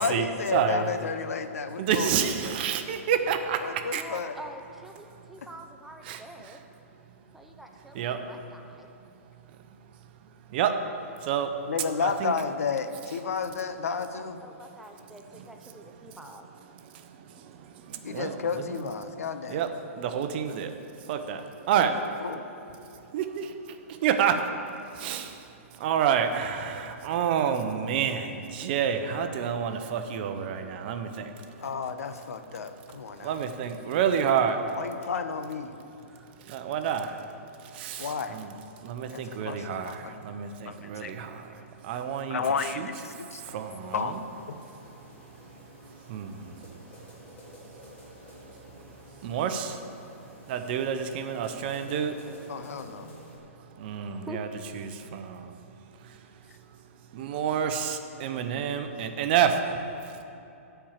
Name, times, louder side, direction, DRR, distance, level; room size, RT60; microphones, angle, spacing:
voice 1, 0.0-2.7 3.6-4.4 11.7-14.4 18.0-19.6 21.7-21.9 22.2-22.4 31.6-33.4 34.8-35.8 38.0-38.4 39.1-40.2 40.7-41.1 42.3-43.4 43.9-44.1 52.5-53.1, left 5 dB, 85° left, 9 dB, 0.7 m, -32 dB
voice 2, 0.5-0.9 1.8-4.0 6.0-6.6 7.9-8.3 10.5-10.8 11.2-11.5 12.0-12.3 15.8-16.2 16.8-18.7 19.5-20.7 21.0-22.0 23.0-24.5 24.9-31.3 33.2-34.7 36.4-38.5 38.8-42.4 42.8-42.9 43.4-44.1 46.1-46.8 49.2-49.8 50.5-52.2 53.8-54.5 54.7-55.6 56.0-56.2 57.1-59.7 60.0-60.2, right 8 dB, 45° right, 7 dB, 0.7 m, -29 dB
voice 3, 3.9-6.6 7.3-8.9 13.8-16.5 21.9-22.4 36.1-36.3 54.0-54.4, equal, 5° right, 2 dB, 0.6 m, -46 dB
sound 1, 43.6-53.4, equal, 20° left, 2.2 m, -50 dB
11.5 x 4.6 x 7.3 m, 2.7 s
hypercardioid pair, 145°, 8 cm